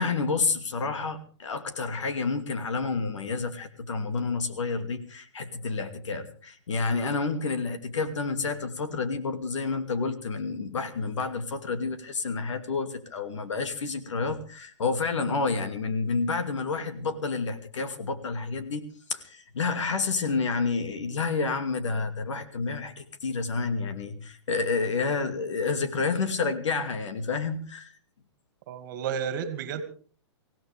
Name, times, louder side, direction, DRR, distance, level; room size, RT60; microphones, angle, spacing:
voice 1, 0.0-27.9, left 4 dB, 90° left, 9 dB, 2.6 m, -29 dB
voice 2, 28.7-29.8, right 7 dB, 40° right, 11 dB, 2.2 m, -32 dB
24.0 x 16.5 x 3.5 m, 0.40 s
hypercardioid pair, 165°, 15 cm